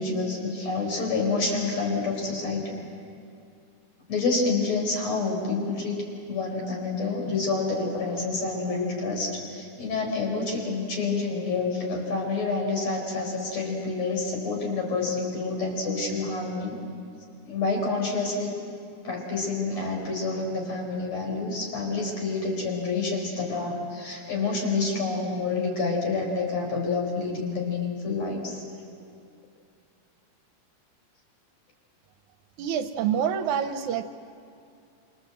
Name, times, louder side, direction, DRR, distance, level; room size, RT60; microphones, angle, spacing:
voice 1, 0.0-2.8 4.1-16.8 17.5-18.5 19.0-28.6, left 3 dB, 55° left, 1 dB, 5.7 m, -28 dB
voice 2, 32.6-34.0, right 8 dB, 75° right, 8 dB, 2.1 m, -26 dB
27.0 x 26.0 x 7.8 m, 2.5 s
omnidirectional pair, 3.7 m